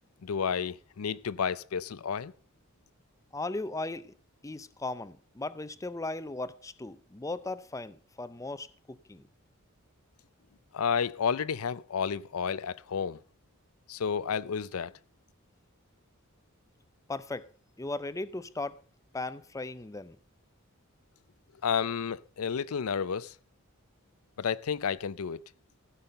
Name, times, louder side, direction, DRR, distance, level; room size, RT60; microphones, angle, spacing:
voice 1, 0.2-2.3 10.7-13.2 13.9-14.9 21.6-23.3 24.4-25.4, left 6 dB, 90° left, 0.5 m, -31 dB
voice 2, 3.3-4.1 4.4-9.3 17.1-17.5 17.8-18.8 19.1-20.2, left 2 dB, 15° left, 0.5 m, -37 dB
16.0 x 5.6 x 6.5 m
head